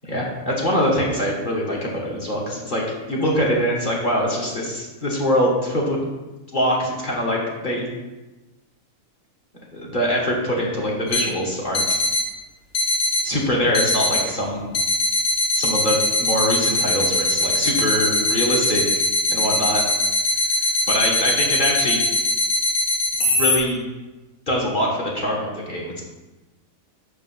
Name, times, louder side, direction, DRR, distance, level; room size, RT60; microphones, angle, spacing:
voice 1, 0.1-2.8 3.1-6.0 6.5-7.9 9.7-12.0 13.2-14.7 15.5-18.8 19.3-19.8 20.9-22.0 23.4-23.8 24.5-26.0, equal, 30° left, -3 dB, 1.8 m, -23 dB
sound 1, 11.1-11.2 11.7-12.2 12.7-13.2 13.7-14.2 14.7-23.6, left 2 dB, 55° left, 1.4 m, -21 dB
6.5 x 5.7 x 5.7 m, 1.1 s
omnidirectional pair, 1.7 m